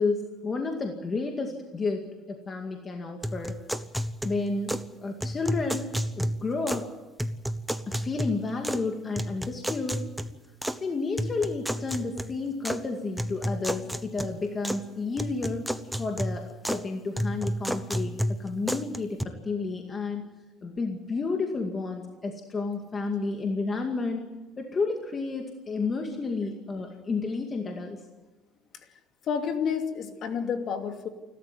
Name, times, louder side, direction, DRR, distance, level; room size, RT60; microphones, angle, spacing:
voice 1, 0.0-3.6 4.2-4.8 5.0-6.9 7.9-10.0 10.8-15.7 16.0-20.3 20.6-24.2 24.6-28.0, left 3 dB, 25° left, 3 dB, 2.1 m, -31 dB
sound 1, 3.2-4.9 5.2-6.9 7.2-8.9 9.2-10.8 11.2-12.8 13.2-14.9 15.2-16.9 17.2-19.2, equal, ahead, 0.9 m, -32 dB
voice 2, 29.3-31.1, left 6 dB, 45° left, 6 dB, 2.6 m, -29 dB
28.5 x 13.0 x 9.6 m, 1.1 s
cardioid pair, 150°, 0 cm